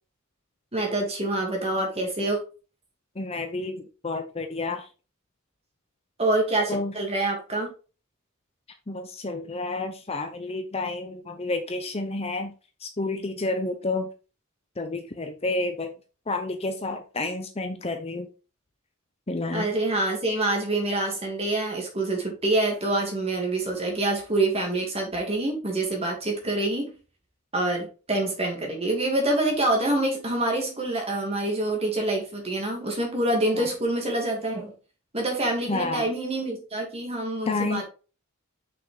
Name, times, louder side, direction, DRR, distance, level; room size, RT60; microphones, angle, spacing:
voice 1, 0.7-2.4 6.2-7.7 19.5-26.9 27.5-34.7 35.1-37.8, right 2 dB, 30° right, 2.6 m, -26 dB
voice 2, 3.2-4.8 6.7-6.9 8.9-12.5 12.8-14.1 14.8-15.9 16.3-18.3 19.3-19.7 33.5-33.7 35.7-36.1 37.5-37.8, left 2 dB, 25° left, 0.7 m, -30 dB
6.3 x 5.8 x 3.9 m
head